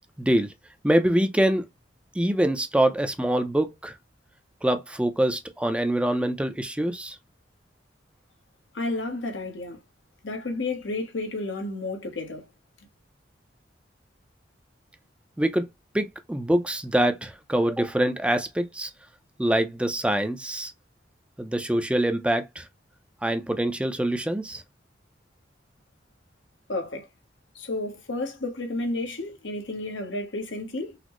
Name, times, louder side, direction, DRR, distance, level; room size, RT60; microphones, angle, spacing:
voice 1, 0.2-0.5 0.8-1.7 2.1-4.0 4.6-7.2 15.4-15.7 15.9-18.9 19.4-20.7 21.4-22.7 23.2-24.6, right 1 dB, 5° right, 0.4 m, -24 dB
voice 2, 8.7-9.8 10.2-12.5 26.7-27.1 27.5-31.0, left 2 dB, 85° left, 0.9 m, -31 dB
4.1 x 2.0 x 3.0 m
head